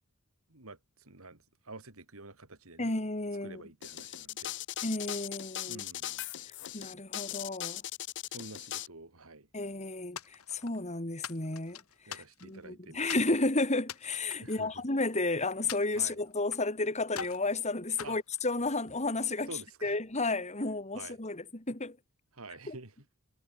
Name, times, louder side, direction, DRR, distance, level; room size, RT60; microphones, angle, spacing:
voice 1, 0.5-2.9 3.4-4.6 5.6-6.3 8.3-9.5 12.1-13.2 14.4-14.8 15.9-16.2 18.0-18.2 19.5-20.0 20.9-21.2 22.3-22.9, right 2 dB, 70° right, 3.5 m, -48 dB
voice 2, 2.8-3.6 4.8-5.8 6.7-7.8 9.5-11.8 12.1-19.5 19.8-22.0 22.7-22.8, left 2 dB, 30° left, 2.7 m, -32 dB
sound 1, 3.8-8.9, left 13 dB, 55° left, 0.8 m, -39 dB
sound 2, 10.2-10.8 11.2-12.6 13.1-13.3 13.8-15.2 15.7-16.7 17.1-17.5 18.0-19.0, left 7 dB, 75° left, 3.7 m, -44 dB
head